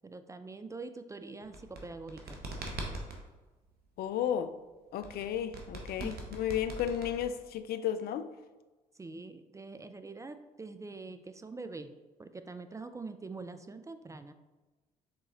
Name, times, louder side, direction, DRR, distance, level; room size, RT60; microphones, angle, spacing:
voice 1, 0.0-2.4 6.0-6.2 8.9-11.9 12.2-14.3, right 3 dB, 15° right, 10 dB, 0.4 m, -44 dB
sound 1, 1.4-3.2 5.0-7.6, right 2 dB, 55° right, 1.0 m, -41 dB
voice 2, 4.0-4.5 4.9-8.3, left 9 dB, 55° left, 10 dB, 0.4 m, -33 dB
4.8 x 3.6 x 2.9 m, 1.2 s
hypercardioid pair, 50°, 19 cm